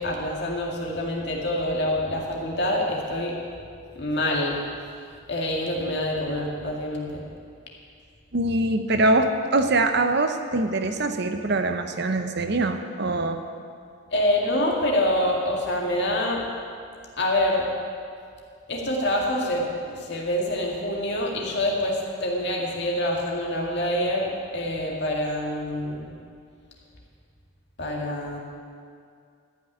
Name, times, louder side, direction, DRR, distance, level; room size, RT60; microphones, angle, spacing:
voice 1, 0.0-3.3 3.9-4.6 5.3-7.2 14.1-16.4 17.2-17.6 18.7-26.1 27.8-28.4, left 1 dB, 50° left, -1 dB, 2.3 m, -26 dB
voice 2, 8.3-13.4, right 2 dB, 50° right, 7 dB, 0.8 m, -23 dB
14.0 x 6.2 x 9.7 m, 2.3 s
head